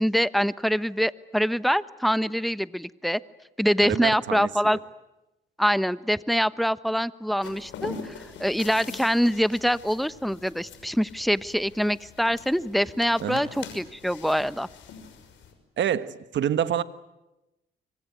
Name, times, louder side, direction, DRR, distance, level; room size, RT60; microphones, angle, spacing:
voice 1, 0.0-3.2 3.6-4.8 5.6-8.1 8.4-14.7, equal, ahead, 14 dB, 1.0 m, -24 dB
voice 2, 3.8-4.5 13.2-13.4 15.8-16.8, right 9 dB, 65° right, 12 dB, 1.5 m, -27 dB
sound 1, 7.4-15.5, left 6 dB, 75° left, 6.1 m, -43 dB
25.5 x 25.0 x 9.3 m, 0.96 s
cardioid pair, 90°, 20 cm